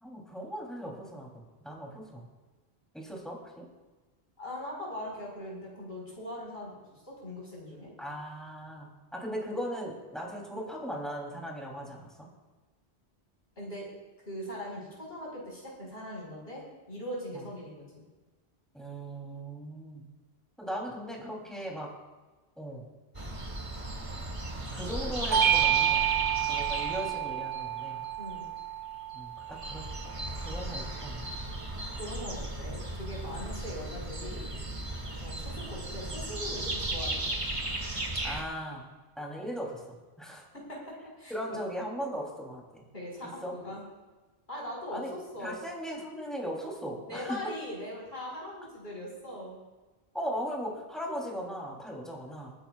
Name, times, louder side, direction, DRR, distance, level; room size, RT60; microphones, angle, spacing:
voice 1, 0.0-2.2 2.9-3.7 8.0-12.3 17.3-17.5 18.7-20.1 20.6-21.9 22.6-22.9 24.7-26.1 26.5-28.1 29.1-29.8 30.4-31.3 38.2-38.9 39.1-40.4 41.3-42.8 43.2-43.5 44.9-47.4 50.1-52.5, equal, ahead, -3 dB, 3.2 m, -38 dB
voice 2, 4.4-7.9 13.6-13.9 14.2-16.6 16.9-18.0 28.2-28.5 31.9-34.5 35.2-37.4 40.5-40.8 41.2-41.6 42.9-43.8 44.5-45.6 47.1-49.6, left 1 dB, 70° left, -4 dB, 4.9 m, -40 dB
sound 1, 23.1-28.6 29.1-29.2 29.4-38.4, right 1 dB, 30° right, 1.5 m, -36 dB
Bell / Doorbell, 25.3-30.2, right 10 dB, 80° right, 1.4 m, -29 dB
28.0 x 10.0 x 2.4 m, 1.2 s
omnidirectional pair, 1.1 m